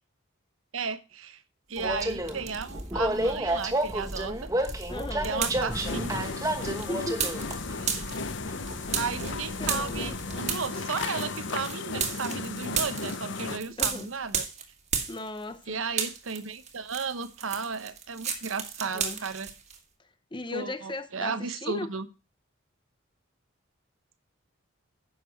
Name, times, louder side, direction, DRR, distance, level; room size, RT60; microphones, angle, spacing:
voice 1, 0.7-1.4 1.7-4.5 5.2-6.3 7.8-14.4 15.7-19.5 20.5-22.1, right 5 dB, 80° right, 0.9 m, -34 dB
Train, 1.8-10.4, right 1 dB, 15° right, 1.2 m, -32 dB
sound 1, 1.8-2.9 3.2-15.6 15.9-19.8, right 7 dB, 35° right, 1.7 m, -35 dB
voice 2, 4.9-5.4 6.8-7.4 9.6-10.1 13.8-14.1 15.1-15.8 18.9-19.3 20.0-21.9, left 2 dB, 25° left, 0.7 m, -37 dB
sound 2, 5.7-13.6, left 3 dB, 60° left, 0.8 m, -35 dB
10.0 x 6.7 x 4.3 m
head